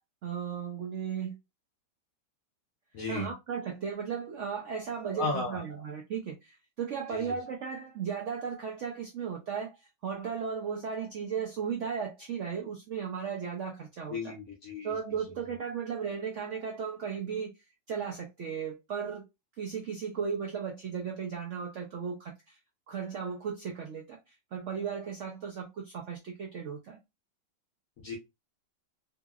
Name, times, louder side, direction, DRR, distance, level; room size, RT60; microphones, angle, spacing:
voice 1, 0.2-1.4 3.1-14.3 14.8-19.2 19.6-22.6 22.9-27.0, right 7 dB, 80° right, 0.6 m, -36 dB
voice 2, 2.9-3.3 5.1-5.6 7.1-7.2 14.1-14.9 28.0-28.2, left 3 dB, 60° left, 0.9 m, -34 dB
2.8 x 2.8 x 2.3 m
omnidirectional pair, 1.9 m